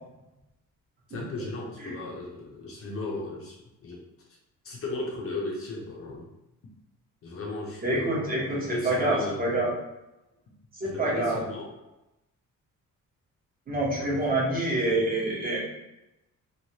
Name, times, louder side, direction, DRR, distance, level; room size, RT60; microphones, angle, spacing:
voice 1, 1.1-3.6 3.8-4.0 4.6-6.3 7.2-9.4 10.8-11.7 14.0-14.2 14.4-14.6, left 2 dB, 45° left, -2 dB, 0.6 m, -36 dB
voice 2, 7.8-8.6 8.8-9.7 10.8-11.4 13.7-15.6, right 2 dB, 25° right, -5 dB, 0.8 m, -26 dB
3.1 x 2.2 x 2.7 m, 0.95 s
wide cardioid pair, 170°, 33 cm